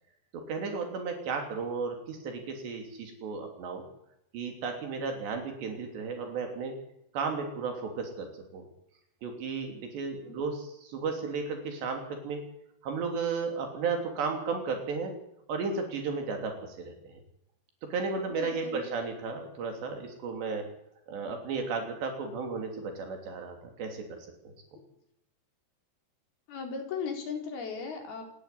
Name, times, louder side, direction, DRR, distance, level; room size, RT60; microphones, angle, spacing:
voice 1, 0.3-3.8 4.3-6.7 7.1-8.6 9.2-12.4 12.8-15.1 15.5-16.9 17.9-20.7 21.1-24.2, right 4 dB, 75° right, 3 dB, 5.2 m, -34 dB
voice 2, 18.3-18.9 24.8-24.9 26.5-28.2, left 5 dB, 60° left, 3 dB, 5.8 m, -37 dB
26.0 x 12.0 x 9.9 m, 0.79 s
omnidirectional pair, 5.0 m